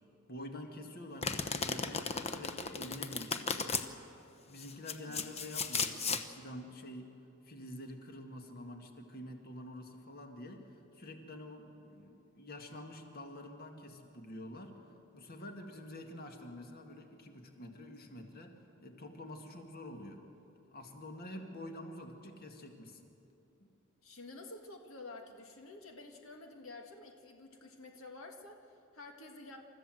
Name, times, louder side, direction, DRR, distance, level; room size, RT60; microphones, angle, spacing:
voice 1, 0.3-3.8 4.5-7.1 7.4-14.8 15.1-20.2 20.7-23.0 23.6-23.7, left 1 dB, 50° left, 4 dB, 1.9 m, -47 dB
Domestic sounds home sounds, 1.2-3.8 4.6-6.2, left 5 dB, 30° left, 0.9 m, -35 dB
voice 2, 5.1-5.5 24.0-29.6, left 2 dB, 85° left, 4 dB, 1.7 m, -50 dB
28.5 x 14.0 x 7.7 m, 2.8 s
head